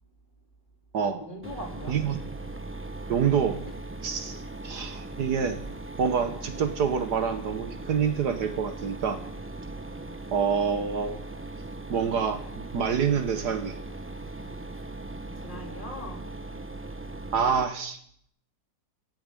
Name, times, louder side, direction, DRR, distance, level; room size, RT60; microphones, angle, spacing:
voice 1, 1.0-2.0 15.3-16.3, left 1 dB, 25° left, -1 dB, 3.2 m, -40 dB
Mechanisms, 1.4-17.6, right 2 dB, 10° right, 0.7 m, -39 dB
voice 2, 1.9-2.2 3.1-3.6 4.0-5.6 6.0-9.2 10.3-11.2 11.9-13.8 17.3-18.0, right 6 dB, 65° right, 8 dB, 1.7 m, -27 dB
14.0 x 8.6 x 9.1 m, 0.64 s
omnidirectional pair, 1.9 m